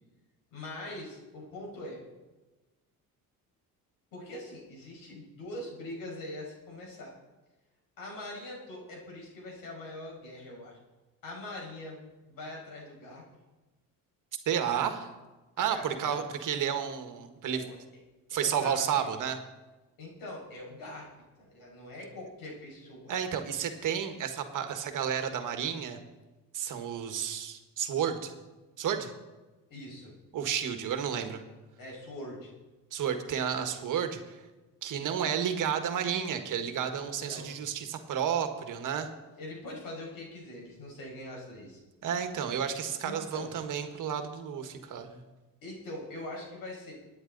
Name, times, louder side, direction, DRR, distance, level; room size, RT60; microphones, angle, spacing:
voice 1, 0.5-2.0 4.1-7.1 8.0-10.8 11.2-12.0 12.3-13.2 15.6-16.2 17.5-17.8 18.3-19.1 20.0-21.1 21.4-23.2 29.7-30.1 31.8-32.5 37.0-37.6 39.4-41.8 43.0-43.5 45.6-46.9, left 1 dB, 70° left, -2 dB, 5.8 m, -43 dB
voice 2, 14.4-15.1 15.6-17.6 18.3-19.4 23.1-26.0 26.5-28.3 28.8-29.1 30.3-31.4 32.9-34.4 34.8-39.1 42.0-45.2, right 8 dB, 60° right, 7 dB, 1.6 m, -31 dB
23.5 x 9.7 x 4.0 m, 1.2 s
cardioid pair, 135°, 35 cm